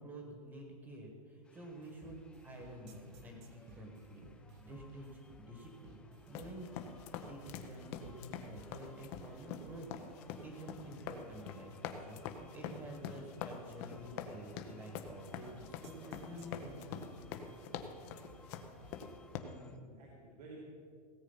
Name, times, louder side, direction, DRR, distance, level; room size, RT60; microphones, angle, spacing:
voice 1, 0.0-6.0 6.3-6.8 7.2-9.9 10.2-17.1, right 1 dB, 15° right, 2 dB, 1.5 m, -50 dB
sound 1, 1.4-19.8, left 4 dB, 5° left, 0.3 m, -64 dB
sound 2, 1.8-19.1, right 2 dB, 45° right, 1.3 m, -60 dB
sound 3, 6.3-19.4, left 8 dB, 35° left, 0.9 m, -45 dB
voice 2, 19.1-20.6, right 2 dB, 90° right, -3 dB, 2.9 m, -54 dB
17.0 x 8.1 x 5.7 m, 2.3 s
supercardioid pair, 165°, 20 cm